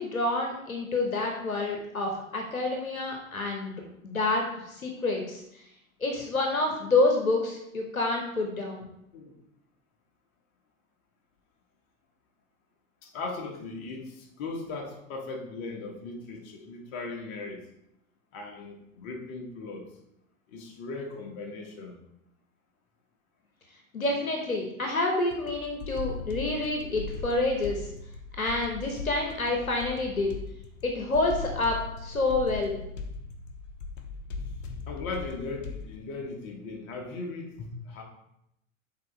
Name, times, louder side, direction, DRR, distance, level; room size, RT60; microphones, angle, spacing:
voice 1, 0.0-3.7 4.0-5.4 6.0-8.9 23.9-27.8 28.4-30.3 30.8-32.7, left 2 dB, 85° left, 2 dB, 1.1 m, -28 dB
voice 2, 13.0-17.7 18.3-19.8 20.5-22.0 34.9-38.0, left 3 dB, 45° left, 1 dB, 1.6 m, -38 dB
sound 1, 25.3-36.0, left 4 dB, 65° left, 1.0 m, -39 dB
6.8 x 4.0 x 4.6 m, 0.79 s
figure-of-eight pair, 85°, 41 cm